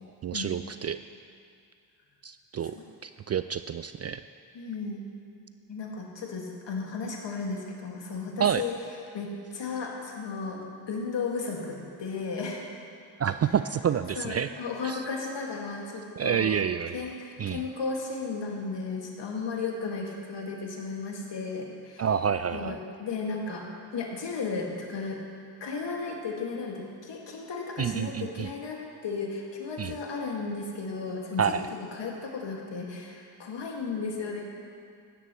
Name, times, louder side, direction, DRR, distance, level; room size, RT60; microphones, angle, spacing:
voice 1, 0.2-1.0 2.2-2.8 3.0-4.2 8.4-8.6 13.2-14.5 14.8-15.0 16.2-17.0 17.4-17.6 22.0-22.8 27.8-28.5 29.8-30.0 31.4-31.6, right 8 dB, 35° right, 11 dB, 0.4 m, -28 dB
voice 2, 4.5-5.0 5.7-8.7 9.1-12.6 14.2-16.6 16.9-22.1 22.5-23.7 23.9-25.2 25.6-31.7 31.9-34.4, left 4 dB, 60° left, 0 dB, 2.1 m, -34 dB
15.5 x 11.0 x 3.1 m, 2.3 s
hypercardioid pair, 40°, 48 cm